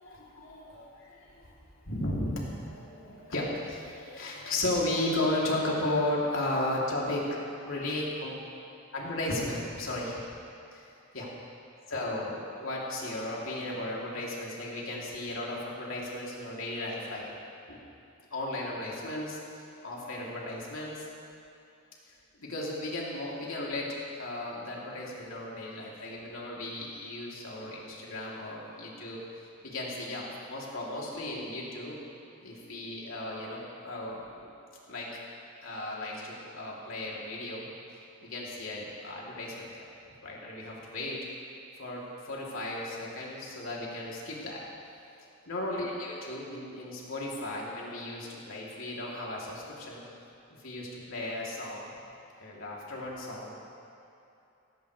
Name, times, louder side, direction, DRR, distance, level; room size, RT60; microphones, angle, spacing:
voice 1, 0.0-1.5 1.8-7.3 7.6-8.3 8.9-10.4 10.7-10.8 11.1-11.3 11.9-17.3 17.7-17.8 18.3-21.0 22.0-29.2 29.6-32.0 32.4-34.5 34.9-35.1 35.6-37.7 38.2-39.9 40.2-41.2 41.8-44.6 45.5-50.0 50.6-51.9 52.4-53.7, left 1 dB, 80° left, -5 dB, 3.2 m, -35 dB
17.5 x 16.0 x 3.4 m, 2.8 s
head